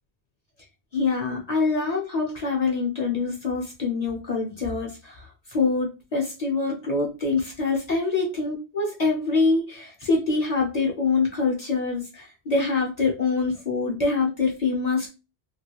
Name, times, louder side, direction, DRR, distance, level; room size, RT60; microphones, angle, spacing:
voice 1, 0.9-15.1, left 4 dB, 40° left, 0 dB, 0.7 m, -25 dB
3.0 x 2.3 x 2.9 m, 0.29 s
omnidirectional pair, 1.1 m